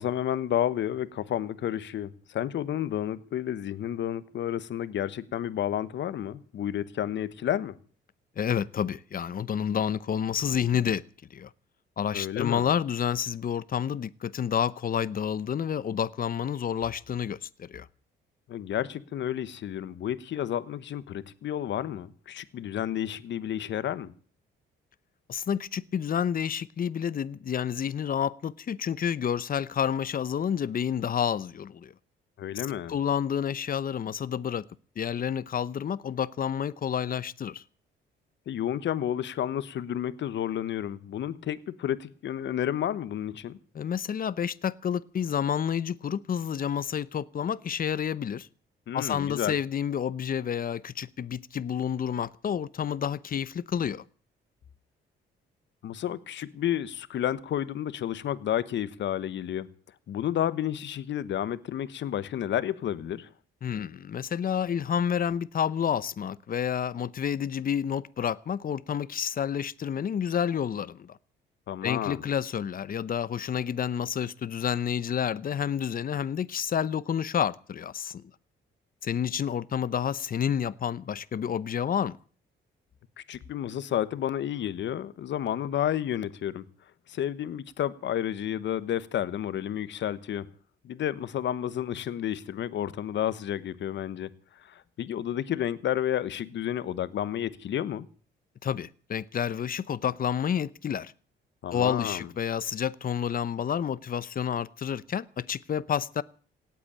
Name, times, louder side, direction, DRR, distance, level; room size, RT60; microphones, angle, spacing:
voice 1, 0.0-7.8 12.1-12.6 18.5-24.1 32.4-33.0 38.5-43.6 48.9-49.6 55.8-59.7 60.1-63.3 71.7-72.2 83.2-86.6 87.1-90.5 90.8-94.3 94.6-98.1 101.6-102.3, left 10 dB, 65° left, 1.2 m, -31 dB
voice 2, 8.4-11.0 11.3-11.5 12.0-17.9 25.3-31.9 32.9-34.6 35.0-37.6 43.7-48.5 48.9-54.0 63.6-71.2 71.8-78.2 79.0-82.2 98.6-101.1 101.7-106.2, left 8 dB, 45° left, 0.8 m, -29 dB
17.5 x 8.5 x 8.8 m
cardioid pair, 90°, 20 cm